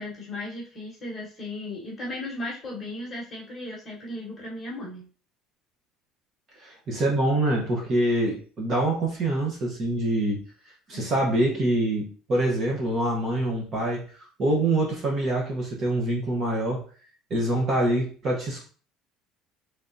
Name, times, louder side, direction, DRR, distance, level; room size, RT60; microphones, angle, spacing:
voice 1, 0.0-5.1 10.9-11.2, left 1 dB, 20° left, -5 dB, 1.3 m, -36 dB
voice 2, 6.6-10.4 10.9-16.8 17.3-18.7, right 1 dB, 30° right, -2 dB, 0.9 m, -25 dB
3.6 x 3.3 x 2.6 m, 0.41 s
cardioid pair, 175°, 0 cm